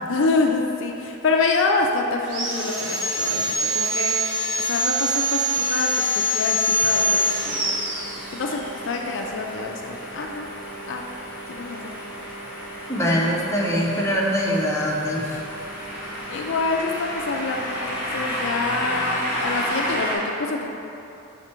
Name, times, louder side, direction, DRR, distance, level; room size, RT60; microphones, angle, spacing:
voice 1, 0.1-4.2 4.6-7.6 8.3-10.5 10.8-11.0 11.5-12.0 16.3-20.7, left 3 dB, 60° left, 2 dB, 0.4 m, -26 dB
Sawing, 2.2-8.7, equal, 60° right, 1.2 m, -24 dB
sound 1, 6.7-20.1, equal, 10° right, 1.1 m, -32 dB
voice 2, 12.9-15.4, equal, 15° left, -4 dB, 0.6 m, -23 dB
6.0 x 4.3 x 4.4 m, 2.9 s
head